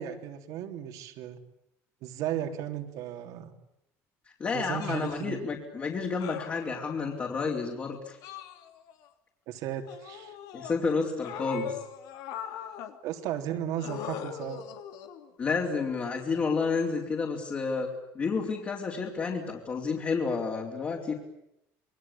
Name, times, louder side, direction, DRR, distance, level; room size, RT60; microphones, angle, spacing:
voice 1, 0.0-1.4 2.0-3.5 4.5-5.4 9.5-10.4 13.0-14.7, right 10 dB, 70° right, 5 dB, 3.5 m, -35 dB
voice 2, 4.4-8.2 10.5-11.8 15.4-21.1, left 4 dB, 30° left, -2 dB, 4.4 m, -30 dB
sound 1, 4.8-5.2 6.2-7.1 8.2-9.1 9.9-10.7 11.2-12.9 13.8-15.3 16.4-16.6, left 9 dB, 75° left, 3.0 m, -41 dB
28.0 x 22.5 x 8.8 m, 0.83 s
cardioid pair, 135°, 6 cm